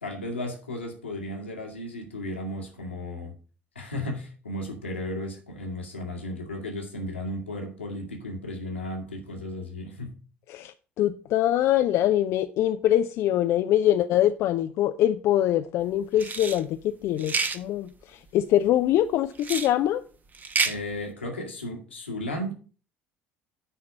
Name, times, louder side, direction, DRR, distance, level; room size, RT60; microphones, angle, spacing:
voice 1, 0.0-3.3 3.8-10.1 20.6-22.5, left 1 dB, 85° left, 1.9 m, -34 dB
voice 2, 10.5-20.0, left 12 dB, 50° left, 0.5 m, -24 dB
sound 1, 16.2-16.6 17.2-17.6 19.4-19.7 20.3-20.8, right 4 dB, 30° right, 1.0 m, -28 dB
9.8 x 4.3 x 6.4 m
figure-of-eight pair, 60°, 6 cm